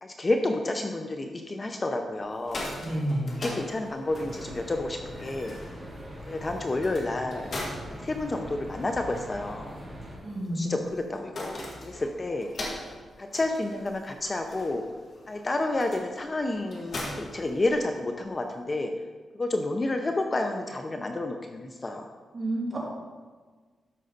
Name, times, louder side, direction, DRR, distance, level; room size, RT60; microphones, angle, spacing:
voice 1, 0.0-2.7 3.4-5.6 6.3-7.5 7.9-9.8 10.6-12.5 13.2-14.8 15.3-18.9 19.3-22.1, left 2 dB, 25° left, 4 dB, 0.6 m, -30 dB
sound 1, 2.2-18.2, left 1 dB, 45° left, 1.9 m, -42 dB
voice 2, 2.7-3.3 10.2-10.6 22.3-22.8, right 1 dB, 35° right, -5 dB, 2.9 m, -30 dB
sound 2, 4.1-10.1, equal, 10° right, 3.1 m, -42 dB
13.0 x 5.5 x 4.0 m, 1.4 s
wide cardioid pair, 130°, 0 cm